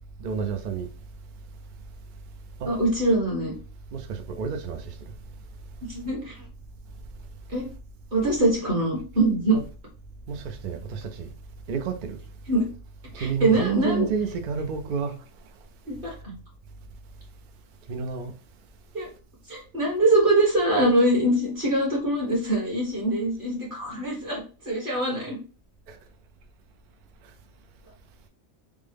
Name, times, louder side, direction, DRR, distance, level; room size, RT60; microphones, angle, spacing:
voice 1, 0.2-0.9 2.6-2.7 3.9-4.9 9.5-9.6 10.3-11.3 11.7-12.2 13.1-15.1 17.9-18.3 25.9-26.0, right 6 dB, 65° right, 0.5 m, -30 dB
voice 2, 2.6-3.5 5.9-6.4 7.5-7.6 8.1-9.6 12.5-12.6 13.2-14.1 15.9-16.3 18.9-19.1 19.5-25.4, right 1 dB, 40° right, 1.5 m, -23 dB
3.5 x 2.1 x 3.3 m
omnidirectional pair, 1.4 m